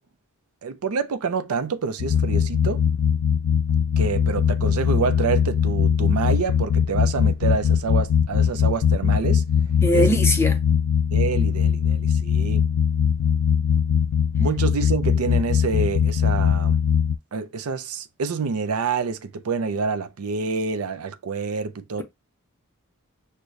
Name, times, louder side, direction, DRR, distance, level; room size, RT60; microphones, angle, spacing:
voice 1, 0.6-2.8 4.0-9.4 9.9-10.1 11.1-12.6 14.4-16.8 17.3-22.0, right 5 dB, 80° right, 0.5 m, -27 dB
sound 1, 2.0-17.2, left 7 dB, 80° left, 0.3 m, -21 dB
voice 2, 9.8-10.6, equal, 10° left, 0.7 m, -20 dB
6.2 x 2.2 x 2.5 m
head